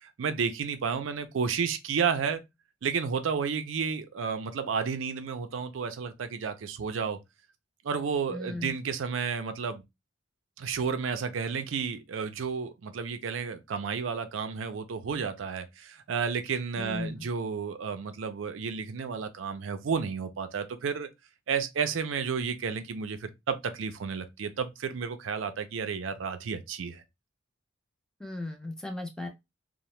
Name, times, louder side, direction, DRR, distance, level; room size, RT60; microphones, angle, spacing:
voice 1, 0.0-2.4 2.8-7.2 7.8-9.8 10.6-21.1 21.5-27.0, right 6 dB, 85° right, 0.4 m, -32 dB
voice 2, 8.3-8.7 16.8-17.2 28.2-29.3, left 2 dB, 5° left, 0.5 m, -36 dB
2.7 x 2.1 x 3.1 m
head